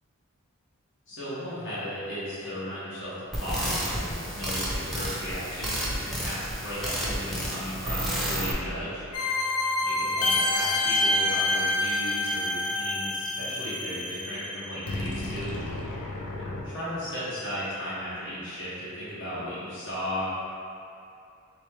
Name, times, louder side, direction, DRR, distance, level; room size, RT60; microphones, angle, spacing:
voice 1, 1.1-9.0 9.8-15.6 16.4-20.3, equal, 60° left, -10 dB, 1.3 m, -35 dB
sound 1, 3.3-8.5, equal, ahead, 0.6 m, -31 dB
sound 2, 9.1-16.6, left 2 dB, 80° left, 0.6 m, -28 dB
3.4 x 3.1 x 3.2 m, 2.6 s
head